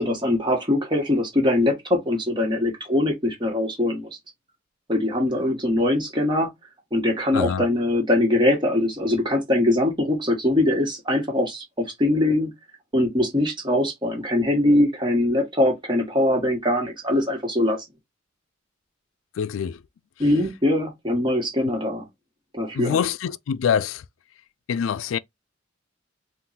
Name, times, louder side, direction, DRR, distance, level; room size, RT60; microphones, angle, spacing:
voice 1, 0.0-4.1 4.9-6.5 6.9-11.6 12.0-12.5 12.9-17.8 20.2-22.1 22.5-23.0, left 1 dB, 25° right, 1.5 m, -22 dB
voice 2, 7.3-7.7 19.4-19.8 22.7-24.0 24.7-25.2, left 7 dB, 80° left, 0.3 m, -25 dB
3.8 x 2.5 x 4.1 m
head